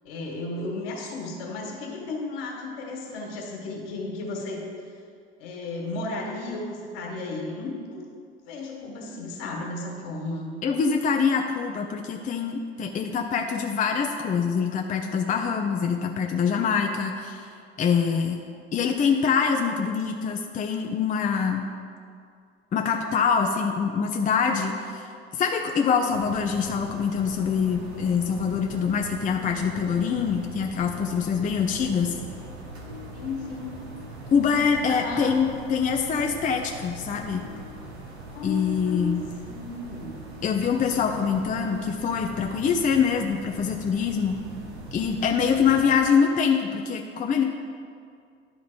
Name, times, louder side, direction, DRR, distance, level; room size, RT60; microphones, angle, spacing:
voice 1, 0.0-4.6 5.4-8.0 8.5-10.5 33.1-33.7 34.9-35.3 38.3-39.2 39.4-40.2, left 3 dB, 65° left, -1 dB, 1.9 m, -34 dB
voice 2, 10.6-17.5 17.8-18.4 18.7-21.6 22.7-25.1 25.3-32.2 34.3-37.5 38.4-39.2 40.4-44.4 44.9-47.4, left 6 dB, 25° left, 3 dB, 0.6 m, -24 dB
sound 1, 26.1-46.0, right 2 dB, 85° right, 1.2 m, -41 dB
11.0 x 3.9 x 5.2 m, 2.3 s
hypercardioid pair, 70°, 31 cm